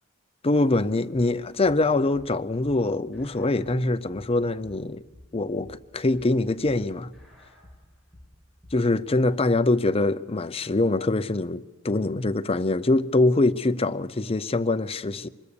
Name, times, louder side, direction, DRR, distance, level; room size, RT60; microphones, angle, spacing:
voice 1, 0.4-5.0 5.3-7.1 8.7-15.3, left 2 dB, 30° left, 0.7 m, -24 dB
sound 1, 3.1-8.9, left 1 dB, ahead, 6.7 m, -51 dB
24.5 x 21.0 x 6.9 m
head